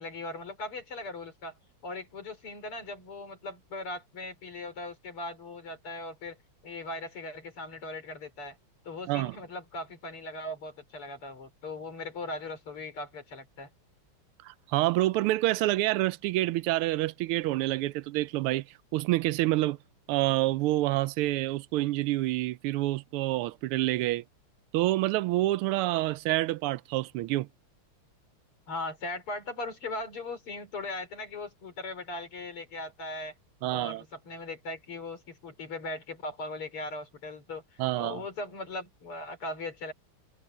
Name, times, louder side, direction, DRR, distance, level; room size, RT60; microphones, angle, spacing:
voice 1, 0.0-1.5 1.8-6.4 6.6-8.6 8.8-13.7 28.7-33.3 33.7-39.9, left 2 dB, 85° left, 5.2 m, -39 dB
voice 2, 14.4-18.6 18.9-19.8 20.1-24.2 24.7-27.5 33.6-34.0 37.8-38.2, right 17 dB, 85° right, 1.5 m, -27 dB
omnidirectional pair, 2.4 m